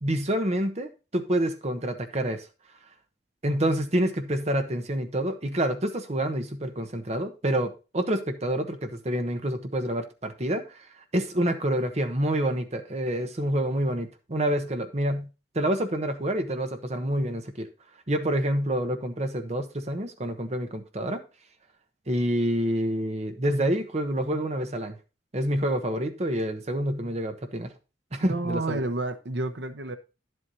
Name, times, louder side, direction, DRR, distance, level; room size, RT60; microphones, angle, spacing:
voice 1, 0.0-2.4 3.4-15.3 15.5-17.7 18.1-21.2 22.1-25.0 25.3-27.7 28.1-28.8, right 1 dB, 40° right, 1.1 m, -27 dB
voice 2, 28.2-30.0, right 2 dB, 85° right, 0.9 m, -30 dB
10.5 x 7.9 x 2.7 m
head